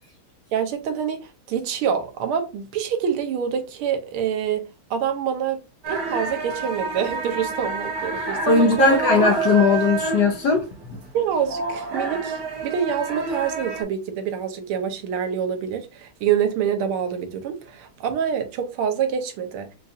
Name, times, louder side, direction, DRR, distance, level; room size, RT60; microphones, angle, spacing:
voice 1, 0.5-5.6 5.9-9.1 11.1-19.7, right 8 dB, 85° right, 1.6 m, -26 dB
sound 1, 5.8-13.8, right 3 dB, 60° right, 1.3 m, -28 dB
voice 2, 8.5-11.0, left 4 dB, 65° left, 1.1 m, -19 dB
5.1 x 2.4 x 2.6 m
omnidirectional pair, 2.4 m